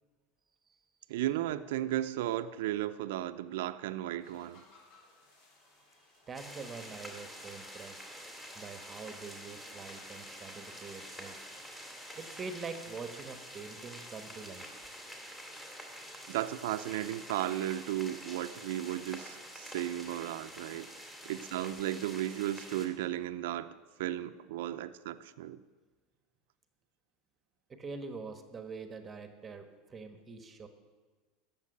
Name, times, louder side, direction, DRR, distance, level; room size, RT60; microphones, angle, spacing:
voice 1, 1.1-4.6 16.3-20.9 21.2-23.7 24.0-25.6, right 13 dB, 80° right, 10 dB, 0.6 m, -35 dB
sound 1, 4.2-12.8, left 2 dB, 55° left, 4.5 m, -63 dB
sound 2, 6.3-22.9, equal, 10° left, 2.8 m, -47 dB
voice 2, 6.3-8.0 8.5-14.8 15.9-16.3 24.6-24.8 27.7-30.7, right 4 dB, 20° right, 8 dB, 1.3 m, -45 dB
13.5 x 7.4 x 9.8 m, 1.4 s
supercardioid pair, 125°, 0 cm